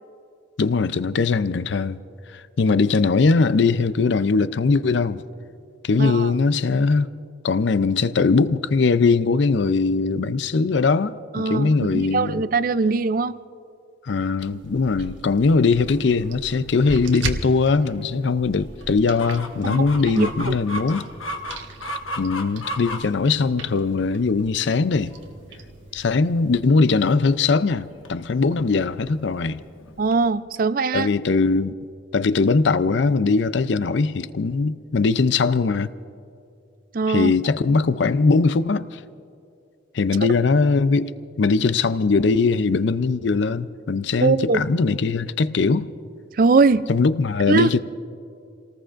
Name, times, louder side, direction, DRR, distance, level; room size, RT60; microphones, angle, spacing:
voice 1, 0.6-2.0 2.3-5.2 5.8-7.1 7.4-12.4 14.0-21.1 22.2-25.2 25.9-29.6 30.9-31.7 32.1-35.9 37.1-39.0 39.9-41.1 41.4-45.9 46.9-47.8, left 4 dB, 65° left, 0.5 m, -20 dB
voice 2, 6.0-6.3 11.3-13.4 19.6-19.9 20.1-20.6 30.0-31.1 36.9-37.3 44.2-44.6 46.3-46.9 47.5-47.7, right 4 dB, 45° right, 0.4 m, -21 dB
sound 1, 14.4-26.6, right 2 dB, 70° right, 1.2 m, -38 dB
Chicken rooster, 19.2-30.3, equal, 85° left, 1.2 m, -37 dB
29.5 x 18.5 x 2.5 m
head